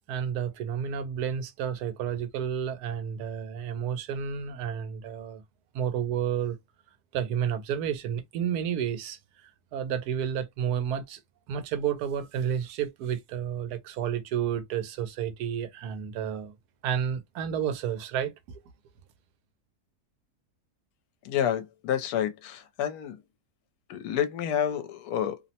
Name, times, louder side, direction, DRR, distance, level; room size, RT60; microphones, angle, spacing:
voice 1, 0.1-5.4 5.7-6.6 7.1-11.2 11.5-16.5 16.8-18.6, right 8 dB, 85° right, 1.1 m, -31 dB
voice 2, 21.2-23.2 23.9-25.4, left 9 dB, 80° left, 1.1 m, -29 dB
2.8 x 2.0 x 2.6 m
omnidirectional pair, 1.6 m